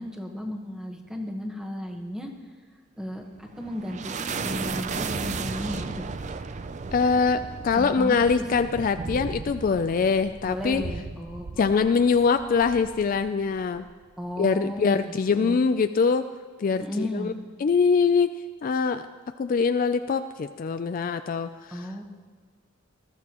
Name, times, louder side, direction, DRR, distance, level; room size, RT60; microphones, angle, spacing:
voice 1, 0.0-2.3 3.0-6.1 7.7-8.4 10.4-11.7 14.2-15.6 16.8-17.3 21.7-22.0, equal, 5° right, 2 dB, 1.2 m, -34 dB
sound 1, 3.2-13.9, right 4 dB, 35° right, 0.4 m, -35 dB
voice 2, 6.9-10.8 11.6-13.9 14.4-16.3 16.6-17.3 17.6-19.0 19.4-21.9, left 5 dB, 45° left, 9 dB, 0.3 m, -23 dB
20.0 x 13.0 x 3.0 m, 1.6 s
head